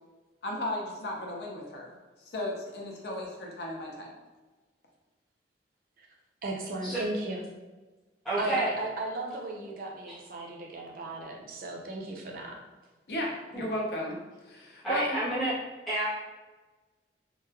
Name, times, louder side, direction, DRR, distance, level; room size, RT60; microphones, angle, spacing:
voice 1, 0.4-2.0 2.2-4.1 8.4-8.9 13.1-14.2 14.4-15.2, left 1 dB, 60° left, -2 dB, 0.5 m, -35 dB
voice 2, 6.4-7.4 8.4-12.6, right 2 dB, 50° right, 0 dB, 0.4 m, -36 dB
voice 3, 8.2-8.7 10.1-10.2 13.5-13.6 14.8-15.5 15.9-16.1, right 2 dB, ahead, -11 dB, 0.5 m, -29 dB
2.9 x 2.1 x 2.3 m, 1.2 s
head